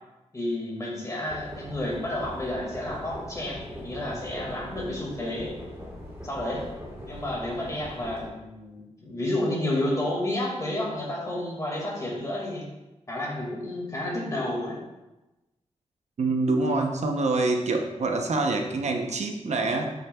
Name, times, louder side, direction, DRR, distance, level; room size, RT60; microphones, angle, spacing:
voice 1, 0.3-5.5 6.2-6.7 7.1-12.7 13.1-14.8, left 1 dB, 25° left, -3 dB, 2.0 m, -31 dB
sound 1, 1.3-8.3, equal, 20° right, 1.7 m, -41 dB
voice 2, 16.2-19.9, right 3 dB, 70° right, 3 dB, 0.8 m, -26 dB
8.5 x 6.3 x 2.3 m, 1.0 s
wide cardioid pair, 130°, 12 cm